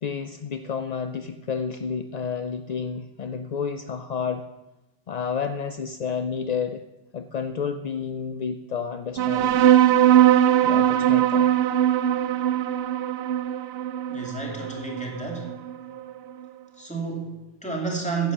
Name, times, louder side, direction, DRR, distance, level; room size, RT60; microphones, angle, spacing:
voice 1, 0.0-4.4 5.1-6.8 7.1-9.6 10.6-11.5, left 6 dB, 55° left, 8 dB, 0.5 m, -30 dB
sound 1, 9.2-16.1, right 11 dB, 65° right, 0.7 m, -20 dB
voice 2, 14.1-15.6 16.8-18.3, right 4 dB, 5° left, -1 dB, 2.5 m, -31 dB
10.0 x 8.4 x 7.0 m, 1.0 s
omnidirectional pair, 1.2 m